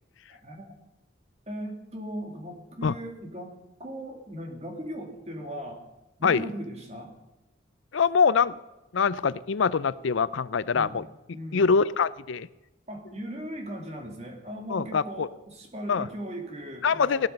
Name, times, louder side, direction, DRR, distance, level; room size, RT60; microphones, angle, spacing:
voice 1, 0.3-0.7 1.5-3.5 3.8-5.8 6.2-7.1 10.7-11.0 11.3-11.7 12.9-17.3, right 1 dB, 35° right, 3 dB, 2.3 m, -38 dB
voice 2, 7.9-8.6 8.9-11.0 11.5-12.5 14.7-15.3 15.9-16.1 16.8-17.3, left 5 dB, 75° left, 18 dB, 0.5 m, -24 dB
16.5 x 12.0 x 5.3 m, 1.0 s
head